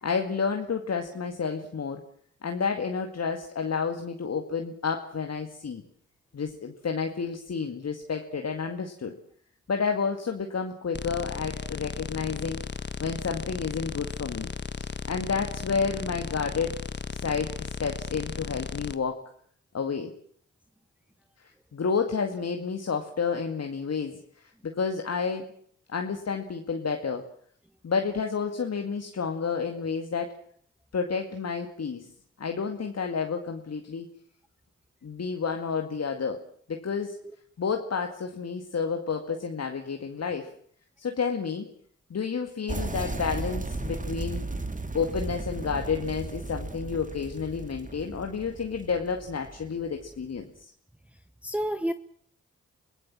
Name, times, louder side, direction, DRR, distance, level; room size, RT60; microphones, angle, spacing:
voice 1, 0.0-2.0 2.4-5.8 6.3-9.1 9.7-12.6 13.0-14.5 14.8-16.8 17.1-19.2 19.7-20.1 21.4-24.2 24.7-25.5 25.9-27.2 27.8-30.4 30.9-32.1 32.4-34.1 35.0-36.4 36.7-37.2 37.6-40.5 41.0-41.7 42.1-44.4 44.9-50.7, left 5 dB, 50° left, 4 dB, 2.1 m, -30 dB
sound 1, 10.9-18.9, left 5 dB, 35° left, 1.4 m, -36 dB
sound 2, 42.7-50.4, right 2 dB, 25° right, 2.3 m, -35 dB
voice 2, 51.1-51.9, equal, 5° right, 10 dB, 1.0 m, -30 dB
25.0 x 16.5 x 7.5 m, 0.62 s
supercardioid pair, 45°, 33 cm